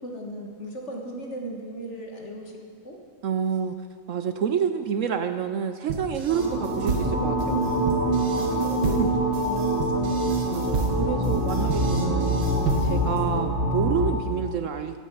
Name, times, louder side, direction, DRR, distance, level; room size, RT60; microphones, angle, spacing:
voice 1, 0.0-2.5 2.8-3.0 8.4-10.3, equal, 45° left, 0 dB, 1.9 m, -36 dB
voice 2, 3.2-3.8 4.1-7.6 9.0-9.1 10.4-12.3 12.8-15.0, right 7 dB, 65° right, 9 dB, 0.8 m, -28 dB
sound 1, 5.9-13.2, right 3 dB, 85° right, 2.1 m, -31 dB
sound 2, 6.3-14.1, right 1 dB, 45° right, 3.3 m, -25 dB
16.0 x 9.4 x 5.5 m, 2.3 s
omnidirectional pair, 1.8 m